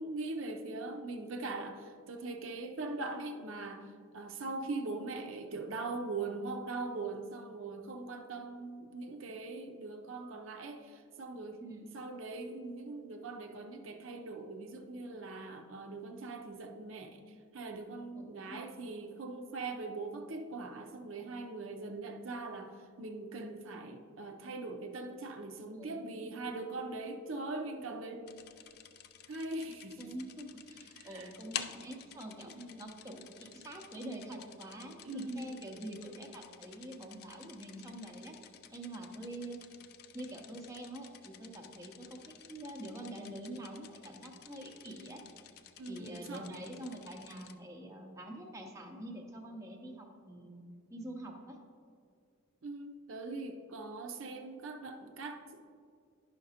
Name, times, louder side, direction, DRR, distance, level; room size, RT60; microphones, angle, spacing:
voice 1, 0.0-11.6 11.9-28.3 29.3-30.1 31.0-31.3 32.4-32.8 35.0-35.5 45.8-46.6 52.6-55.7, right 3 dB, 70° right, 4 dB, 0.6 m, -41 dB
voice 2, 18.2-18.6 25.7-26.3 30.0-32.5 32.8-38.4 38.7-39.6 40.1-45.2 45.9-50.6 50.9-51.6, right 1 dB, 15° right, 1 dB, 0.6 m, -45 dB
sound 1, 28.3-47.5, left 9 dB, 50° left, 0.3 m, -51 dB
10.5 x 5.7 x 2.8 m, 2.3 s
head